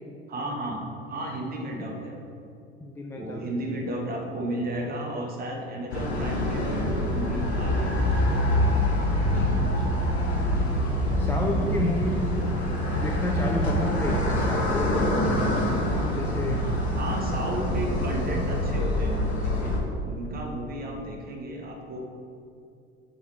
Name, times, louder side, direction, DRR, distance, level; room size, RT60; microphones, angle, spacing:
voice 1, 0.3-2.3 3.1-8.0 12.8-13.1 13.9-14.0 16.4-19.7 20.0-22.1, right 1 dB, 30° right, 1 dB, 1.1 m, -34 dB
voice 2, 2.8-3.5 9.2-9.5 9.8-9.9 11.2-12.5 12.9-15.3 15.9-16.7, left 1 dB, 5° left, -1 dB, 0.4 m, -32 dB
sound 1, 5.9-19.8, left 1 dB, 75° left, 1.1 m, -25 dB
6.7 x 4.8 x 4.3 m, 2.6 s
figure-of-eight pair, 65°, 32 cm